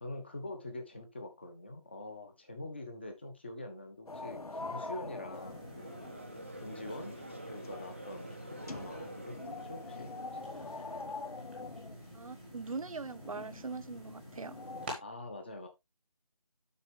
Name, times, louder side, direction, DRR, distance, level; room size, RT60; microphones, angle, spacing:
voice 1, 0.0-6.0 6.6-7.2 7.5-10.2 10.4-10.7 15.0-15.7, left 2 dB, 20° left, 0.9 m, -45 dB
sound 1, 4.1-14.9, left 3 dB, 80° left, 1.0 m, -45 dB
sound 2, 5.3-15.0, right 1 dB, ahead, 1.1 m, -50 dB
Conversation / Crowd, 5.5-10.8, right 1 dB, 20° right, 0.5 m, -48 dB
voice 2, 12.1-14.6, right 4 dB, 65° right, 0.8 m, -41 dB
7.9 x 6.2 x 3.4 m
figure-of-eight pair, 170°, 19 cm